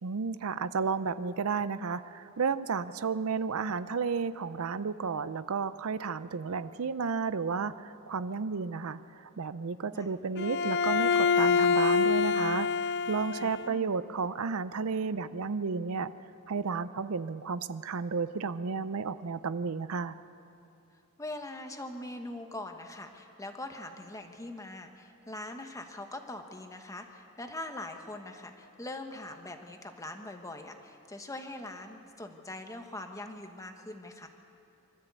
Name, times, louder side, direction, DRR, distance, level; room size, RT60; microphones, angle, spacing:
voice 1, 0.0-16.1 16.5-20.1, right 5 dB, 70° right, 14 dB, 0.5 m, -32 dB
Bowed string instrument, 10.4-13.8, left 5 dB, 50° left, 0.5 m, -26 dB
voice 2, 13.4-14.0 21.2-34.3, left 1 dB, 15° left, 5 dB, 1.3 m, -42 dB
24.5 x 13.5 x 8.3 m, 2.7 s
head